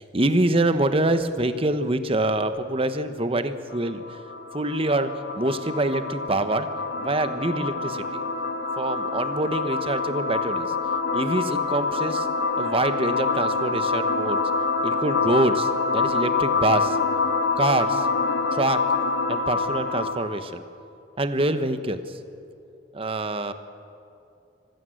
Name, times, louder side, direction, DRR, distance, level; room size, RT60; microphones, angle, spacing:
voice 1, 0.0-4.0 4.5-6.7 7.0-8.2 8.8-10.7 11.1-12.3 12.6-14.4 14.8-17.0 17.5-18.1 18.5-18.9 19.3-20.6 21.2-22.2 22.9-23.5, right 2 dB, 30° right, 10 dB, 1.1 m, -25 dB
sound 1, 3.7-20.4, left 4 dB, 85° left, 1.6 m, -26 dB
24.0 x 16.0 x 7.8 m, 2.6 s
head